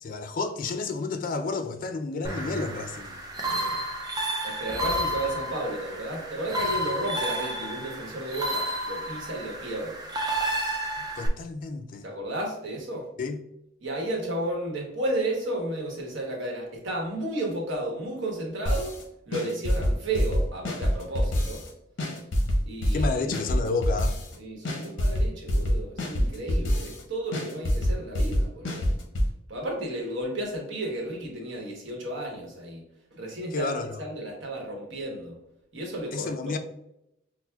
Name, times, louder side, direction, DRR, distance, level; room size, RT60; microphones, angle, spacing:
voice 1, 0.0-3.2 11.2-12.0 13.2-13.4 22.9-24.2 33.5-34.0 36.1-36.6, left 3 dB, 45° left, 0.3 m, -30 dB
sound 1, 2.2-11.3, right 1 dB, 20° right, 0.4 m, -31 dB
voice 2, 4.4-10.0 12.0-13.1 13.8-18.9 19.3-21.6 22.7-23.1 24.4-28.9 29.5-32.8 33.1-35.3 35.7-36.6, right 1 dB, 70° right, 1.0 m, -33 dB
sound 2, 18.7-19.0 19.3-21.7 22.0-24.4 24.7-27.0 27.3-29.3, equal, 65° left, 0.7 m, -25 dB
5.8 x 2.0 x 2.2 m
head